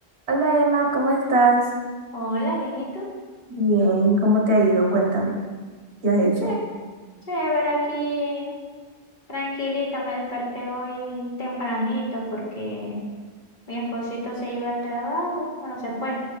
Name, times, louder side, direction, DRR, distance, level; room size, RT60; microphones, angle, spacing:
voice 1, 0.3-1.6 3.5-5.4 6.0-6.5, right 2 dB, 80° right, -1 dB, 1.6 m, -19 dB
voice 2, 2.1-3.1 6.4-6.6 7.3-8.5 9.3-13.0 13.7-16.2, equal, 50° left, -4 dB, 1.7 m, -28 dB
7.4 x 5.8 x 3.3 m, 1.4 s
omnidirectional pair, 1.1 m